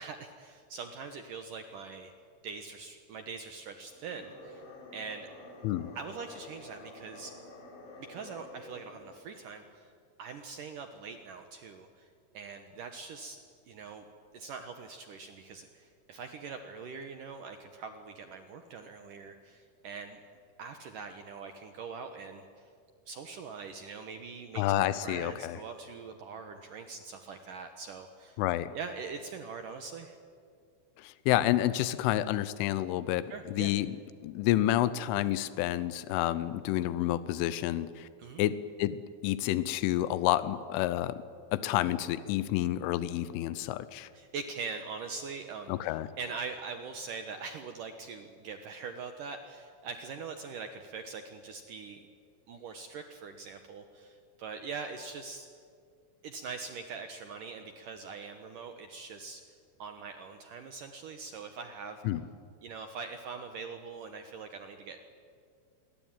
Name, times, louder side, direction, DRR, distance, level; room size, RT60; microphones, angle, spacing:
voice 1, 0.0-2.1 2.4-4.6 4.9-5.3 6.0-7.3 8.0-9.9 10.2-12.1 12.3-13.4 13.7-14.1 14.3-20.2 20.6-22.7 23.1-28.4 28.7-30.2 33.3-33.7 38.2-38.4 44.1-45.9 46.2-52.0 52.5-55.5 56.2-59.4 59.8-62.0 62.6-65.0, right 5 dB, 70° right, 6 dB, 2.0 m, -42 dB
sound 1, 3.9-9.2, left 2 dB, 65° left, 6.8 m, -49 dB
voice 2, 24.6-25.6 28.4-28.7 31.0-34.0 34.2-38.1 38.4-41.2 41.5-44.1 45.7-46.1 62.1-62.2, left 14 dB, 90° left, 14 dB, 3.3 m, -29 dB
26.5 x 22.5 x 9.1 m, 2.2 s
omnidirectional pair, 5.5 m